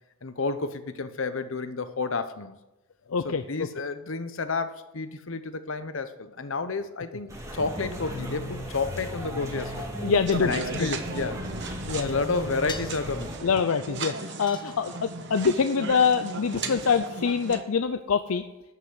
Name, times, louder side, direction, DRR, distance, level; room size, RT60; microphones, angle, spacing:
voice 1, 0.2-2.5 3.2-9.9 10.4-11.4 12.0-13.4 16.6-16.8, left 3 dB, 65° left, 11 dB, 0.9 m, -31 dB
voice 2, 3.1-3.7 10.0-11.0 11.9-12.2 13.4-18.4, left 5 dB, 85° left, 9 dB, 0.5 m, -25 dB
sound 1, 7.3-13.4, equal, 15° right, 1.8 m, -36 dB
sound 2, 10.3-17.6, right 3 dB, 55° right, 1.1 m, -37 dB
sound 3, 12.7-13.1 14.5-15.2 16.6-17.4, left 4 dB, 20° left, 1.1 m, -42 dB
12.5 x 6.0 x 7.9 m, 0.97 s
head